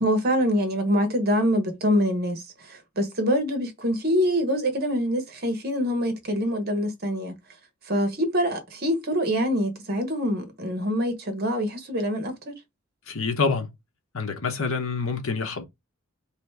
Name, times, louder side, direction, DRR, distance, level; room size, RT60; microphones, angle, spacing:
voice 1, 0.0-7.3 7.9-12.5, equal, 45° right, 1.3 m, -25 dB
voice 2, 13.1-13.7 14.1-15.6, left 4 dB, 70° left, 1.1 m, -26 dB
3.2 x 3.2 x 4.7 m
head